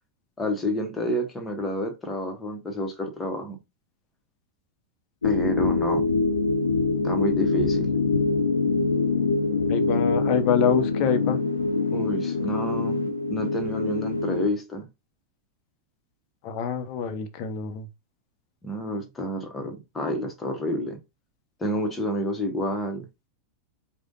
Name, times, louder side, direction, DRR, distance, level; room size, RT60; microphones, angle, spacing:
voice 1, 0.4-3.6 5.2-6.1 7.0-8.0 11.9-13.0 13.3-14.8 18.6-21.0 21.6-23.1, left 1 dB, 15° left, 1.3 m, -29 dB
sound 1, 5.2-14.5, left 3 dB, 75° left, 0.6 m, -24 dB
voice 2, 9.7-11.4 16.4-17.9, left 7 dB, 40° left, 0.9 m, -25 dB
5.0 x 2.5 x 3.8 m
figure-of-eight pair, 90°, 0 cm